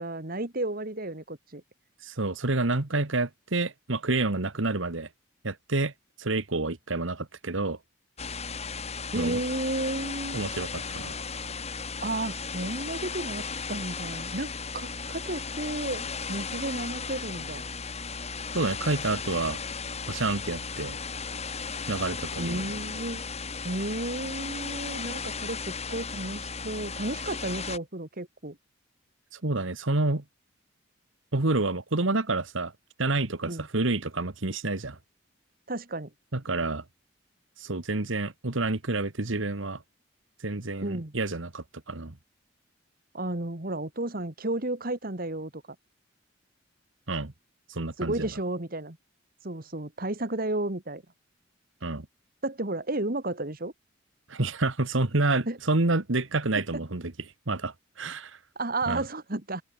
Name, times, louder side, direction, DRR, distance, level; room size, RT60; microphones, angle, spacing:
voice 1, 0.0-1.6 9.1-10.4 12.0-17.7 22.4-23.2 23.6-25.6 25.9-28.6 33.5-33.7 35.7-36.1 40.8-41.1 43.1-45.6 48.0-49.0 49.4-51.0 52.4-53.7 55.5-55.6 56.7-56.8 58.6-59.6, right 2 dB, 45° right, 2.0 m, -32 dB
voice 2, 2.0-5.1 5.4-5.9 6.2-7.8 9.2-9.4 10.3-11.2 18.5-19.6 20.1-21.0 21.9-22.7 29.4-30.2 31.3-32.7 33.0-35.0 36.3-36.8 37.6-39.8 40.4-42.1 47.1-47.3 47.7-48.3 51.8-52.1 54.3-57.1 57.5-58.4 58.9-59.0, right 2 dB, 75° right, 1.6 m, -28 dB
sound 1, 8.2-27.8, left 5 dB, 30° left, 3.9 m, -35 dB
open air
head